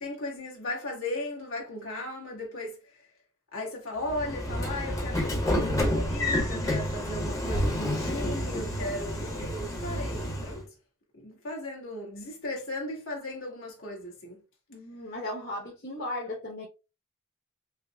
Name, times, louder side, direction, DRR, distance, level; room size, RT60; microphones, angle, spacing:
voice 1, 0.0-3.0 3.5-10.7 11.1-14.4, left 1 dB, 65° left, 1.3 m, -36 dB
Train / Sliding door, 4.1-10.6, left 1 dB, 15° left, 0.8 m, -29 dB
voice 2, 14.7-16.7, left 1 dB, 45° left, 1.0 m, -36 dB
5.4 x 2.0 x 2.3 m
head